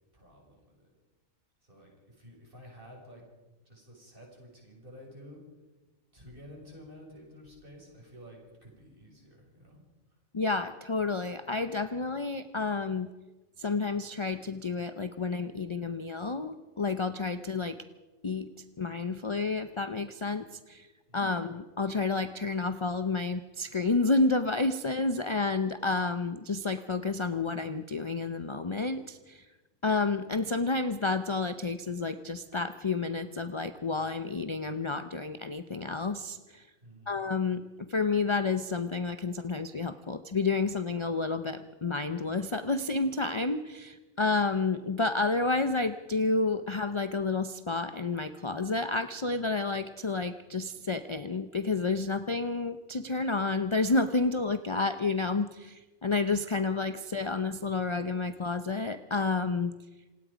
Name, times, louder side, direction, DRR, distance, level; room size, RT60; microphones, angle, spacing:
voice 1, 0.1-0.9 1.6-3.2 3.6-5.4 6.1-9.8 36.8-37.3, equal, 40° right, -1 dB, 6.7 m, -51 dB
voice 2, 10.3-13.1 13.6-17.8 18.2-18.5 18.8-20.9 21.1-29.4 29.8-36.6 37.1-37.6 37.9-59.7, left 3 dB, 30° left, 10 dB, 0.6 m, -30 dB
27.0 x 19.0 x 5.1 m, 1.2 s
omnidirectional pair, 1.4 m